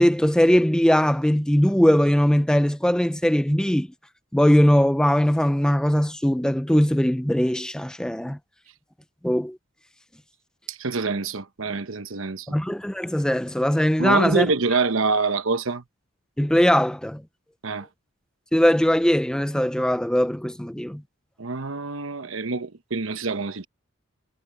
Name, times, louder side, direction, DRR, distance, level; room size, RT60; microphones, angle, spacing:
voice 1, 0.0-3.9 4.3-8.4 9.2-9.6 12.5-14.5 14.7-14.8 16.4-17.2 18.5-21.0, equal, 5° left, 0.6 m, -20 dB
voice 2, 10.7-12.6 14.0-15.8 17.6-17.9 21.4-23.7, right 4 dB, 70° right, 1.0 m, -26 dB
head